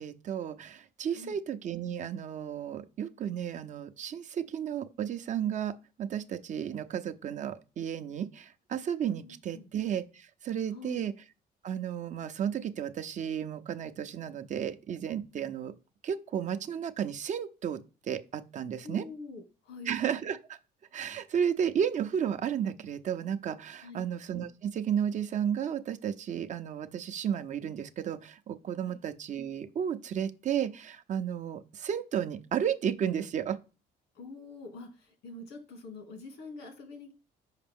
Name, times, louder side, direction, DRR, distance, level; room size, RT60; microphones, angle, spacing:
voice 1, 0.0-5.7 6.0-11.1 11.6-15.7 16.0-17.8 18.1-19.0 19.9-20.6 20.9-33.6, right 8 dB, 45° right, 0.6 m, -33 dB
voice 2, 9.2-9.7 10.7-11.0 18.8-20.0 23.8-24.1 28.8-29.0 34.1-37.1, left 3 dB, 85° left, 2.2 m, -45 dB
5.7 x 5.1 x 3.6 m
cardioid pair, 110°, 17 cm